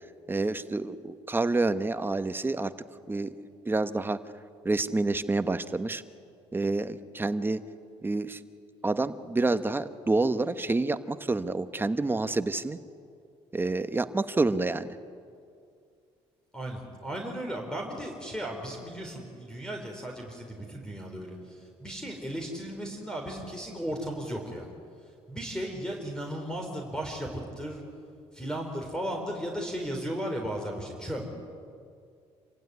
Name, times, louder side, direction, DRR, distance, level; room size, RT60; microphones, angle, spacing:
voice 1, 0.3-2.7 3.1-3.3 3.6-4.2 4.6-6.0 6.5-7.6 8.0-8.4 8.8-12.8 13.5-14.9, right 2 dB, 15° right, 11 dB, 1.2 m, -28 dB
voice 2, 16.5-24.7 25.3-27.8 28.3-31.3, equal, 5° left, 2 dB, 4.1 m, -35 dB
27.5 x 16.0 x 9.6 m, 2.3 s
cardioid pair, 90°, 12 cm